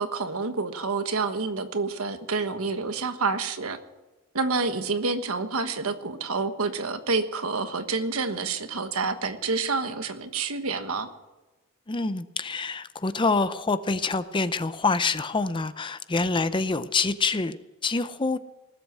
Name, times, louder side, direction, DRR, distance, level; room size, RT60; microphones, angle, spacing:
voice 1, 0.0-3.8 4.3-11.1, right 4 dB, 80° right, 9 dB, 1.3 m, -28 dB
voice 2, 11.9-18.4, left 3 dB, 20° left, 13 dB, 0.5 m, -26 dB
19.5 x 8.0 x 7.6 m, 1.1 s
head